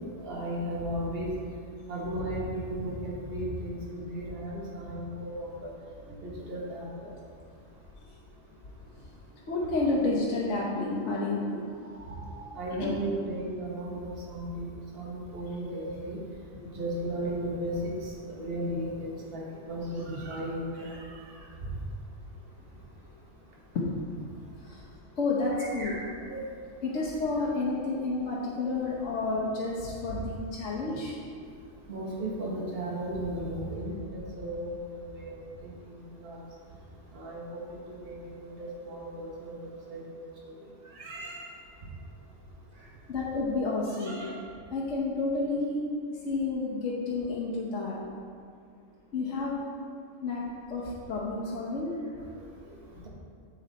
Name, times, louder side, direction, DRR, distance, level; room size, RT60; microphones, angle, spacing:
voice 1, 0.2-1.3 1.9-5.7 6.2-7.1 12.1-14.7 14.9-16.2 16.7-21.3 25.6-26.0 26.3-26.4 27.4-27.5 31.9-34.0 34.4-35.3 35.6-36.4 37.1-39.6 39.9-40.5 40.9-41.4 43.9-44.3, right 1 dB, 45° right, -4 dB, 1.6 m, -35 dB
voice 2, 9.3-11.7 12.8-12.9 23.7-24.0 24.6-24.8 25.1-25.9 26.8-31.2 43.1-44.1 44.7-45.8 46.1-48.0 49.1-49.6 50.2-52.0 52.2-52.3 52.9-53.0, left 3 dB, 65° left, -4 dB, 1.3 m, -30 dB
8.0 x 7.2 x 4.1 m, 2.2 s
omnidirectional pair, 1.4 m